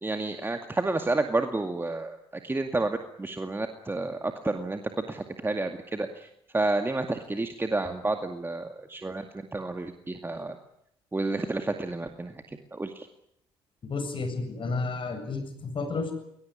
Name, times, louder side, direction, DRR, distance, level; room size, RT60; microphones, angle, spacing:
voice 1, 0.0-9.3 9.5-10.6 11.1-13.1, right 2 dB, 20° right, 6 dB, 2.2 m, -30 dB
voice 2, 13.9-16.1, left 3 dB, 45° left, 7 dB, 7.8 m, -31 dB
21.0 x 20.0 x 10.0 m, 0.75 s
hypercardioid pair, 60°, 12 cm